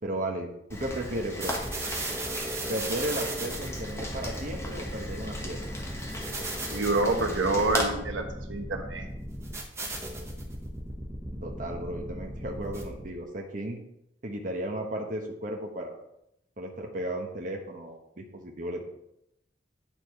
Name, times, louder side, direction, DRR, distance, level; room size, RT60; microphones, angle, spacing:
voice 1, 0.0-1.6 2.7-5.6 11.4-13.8 14.2-16.0 16.6-18.9, right 1 dB, 40° right, 1 dB, 1.0 m, -34 dB
Rain, 0.7-7.9, left 1 dB, 15° left, 1.2 m, -37 dB
sound 1, 1.4-13.2, right 1 dB, 15° right, 1.0 m, -37 dB
voice 2, 6.7-8.2 8.5-9.1, right 2 dB, 80° right, 4 dB, 1.1 m, -27 dB
9.0 x 4.8 x 4.7 m, 0.81 s
head